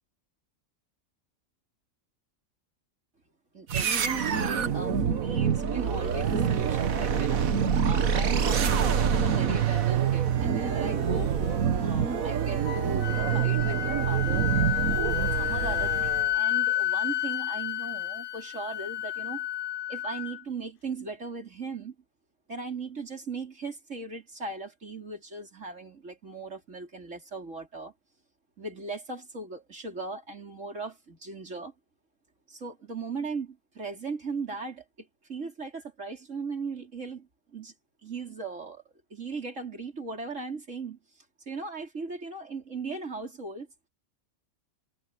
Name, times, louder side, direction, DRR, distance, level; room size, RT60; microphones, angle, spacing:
voice 1, 3.5-14.5 15.1-19.5 19.9-22.0 22.5-27.9 28.6-31.7 32.5-37.7 38.0-38.8 39.1-43.7, right 3 dB, 60° right, 4.1 m, -38 dB
sound 1, 3.7-16.3, right 7 dB, 80° right, 1.7 m, -26 dB
sound 2, 8.1-13.3, equal, 10° right, 3.0 m, -44 dB
Wind instrument woodwind instrument, 12.7-20.4, left 13 dB, 60° left, 0.6 m, -30 dB
omnidirectional pair, 1.5 m